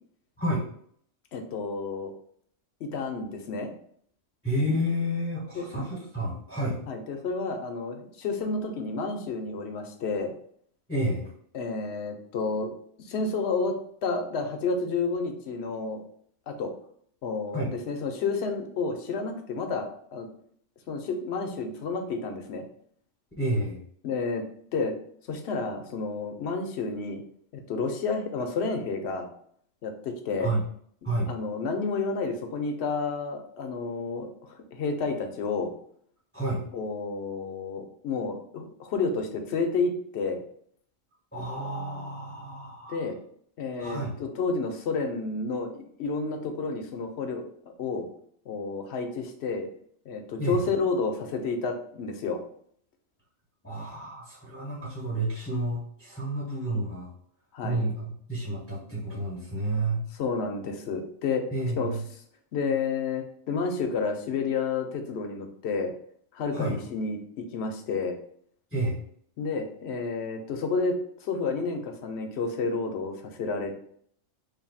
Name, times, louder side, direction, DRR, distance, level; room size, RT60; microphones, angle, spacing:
voice 1, 1.3-2.1 2.8-3.7 5.5-5.7 6.9-10.3 11.5-12.7 13.0-16.0 16.5-16.7 17.2-20.3 20.9-22.6 24.0-24.4 24.7-24.9 25.3-27.2 27.5-29.3 29.8-30.5 31.3-35.7 36.7-40.4 42.9-43.2 43.6-47.5 47.8-48.1 48.5-49.7 50.1-52.4 57.5-57.8 60.1-61.4 61.8-61.9 62.5-65.9 66.3-68.2 69.4-73.8, left 4 dB, 65° left, 5 dB, 0.8 m, -30 dB
voice 2, 4.4-6.8 10.9-11.3 17.5-17.7 23.4-23.8 30.4-30.6 31.0-31.3 36.3-36.6 41.3-43.0 43.8-44.1 50.4-50.6 53.6-57.1 57.6-60.0 61.5-62.0 66.5-66.8 68.7-69.0, right 1 dB, 10° left, -6 dB, 0.8 m, -30 dB
3.3 x 2.6 x 4.0 m, 0.63 s
omnidirectional pair, 1.4 m